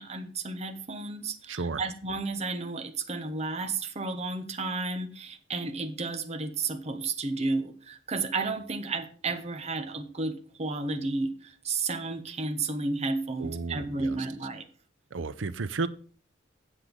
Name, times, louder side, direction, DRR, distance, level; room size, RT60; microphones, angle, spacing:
voice 1, 0.0-14.6, right 3 dB, 35° right, 0.8 m, -32 dB
voice 2, 1.5-1.8 13.4-14.2 15.1-15.9, right 3 dB, 80° right, 0.6 m, -33 dB
8.0 x 7.6 x 5.0 m
head